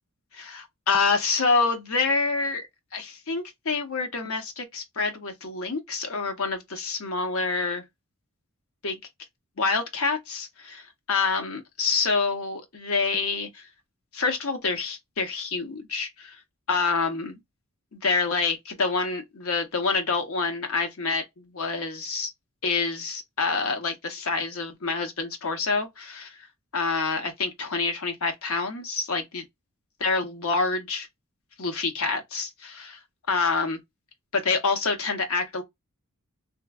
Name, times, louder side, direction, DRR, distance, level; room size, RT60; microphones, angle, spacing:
voice 1, 0.3-2.6 2.9-7.8 8.8-9.0 9.6-13.7 14.1-16.4 16.7-17.4 17.9-22.3 22.6-26.4 26.7-29.4 30.0-31.1 31.6-33.0 33.3-33.8 34.3-35.6, left 4 dB, 65° left, 0.8 m, -27 dB
3.0 x 2.3 x 2.2 m
head